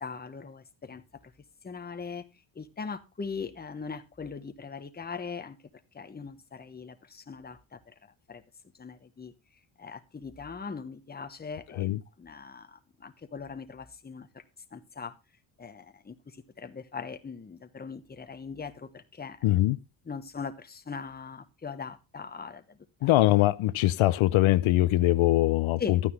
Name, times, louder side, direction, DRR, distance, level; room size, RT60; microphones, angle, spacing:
voice 1, 0.0-1.3 1.6-2.2 2.5-5.6 5.9-7.9 8.3-8.4 8.7-9.3 9.8-14.4 14.7-15.1 15.6-19.6 20.0-23.1 25.8-26.0, left 5 dB, 20° left, 1.0 m, -40 dB
voice 2, 19.4-19.8 23.0-26.0, left 16 dB, 80° left, 0.6 m, -22 dB
12.0 x 9.4 x 3.2 m
cardioid pair, 125°, 47 cm